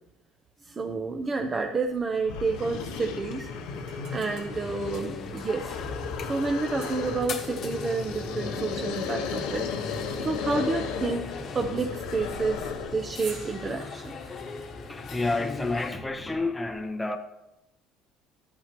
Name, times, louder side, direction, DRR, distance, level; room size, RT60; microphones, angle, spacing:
voice 1, 0.6-3.5 4.1-5.7 6.2-11.3 11.5-14.1, right 4 dB, 25° right, 0.7 m, -30 dB
sound 1, 1.9-2.0 2.3-13.1, left 6 dB, 90° left, 1.2 m, -35 dB
sound 2, 2.5-15.9, left 3 dB, 45° left, 1.1 m, -38 dB
sound 3, 3.8-5.8 6.8-7.5 13.0-16.6, right 4 dB, 75° right, 2.3 m, -50 dB
voice 2, 14.9-17.2, left 2 dB, 10° left, 0.7 m, -29 dB
13.0 x 8.6 x 2.9 m
cardioid pair, 130°, 0 cm